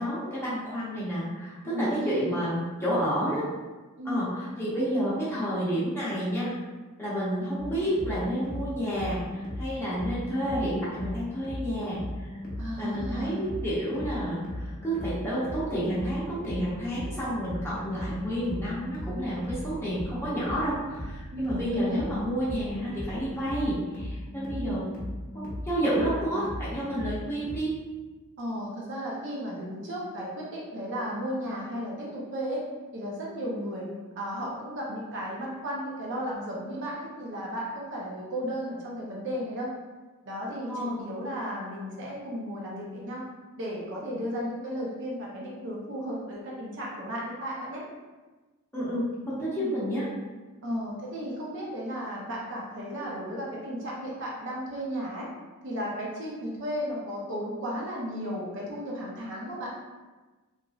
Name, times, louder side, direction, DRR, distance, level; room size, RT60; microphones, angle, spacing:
voice 1, 0.0-3.5 4.0-6.5 7.0-12.0 12.8-24.9 25.3-27.7 40.7-41.1 48.7-50.1 50.7-50.8, equal, 10° left, -10 dB, 0.8 m, -30 dB
voice 2, 1.6-2.4 4.0-4.3 12.6-13.4 21.3-22.1 24.6-24.7 28.4-32.6 32.9-33.9 34.2-39.7 40.2-43.2 43.6-47.8 49.5-49.7 50.6-55.3 55.6-59.7, equal, 55° right, -4 dB, 0.6 m, -34 dB
sound 1, 7.6-27.6, left 1 dB, 40° left, 0.6 m, -38 dB
3.0 x 2.5 x 2.3 m, 1.2 s
head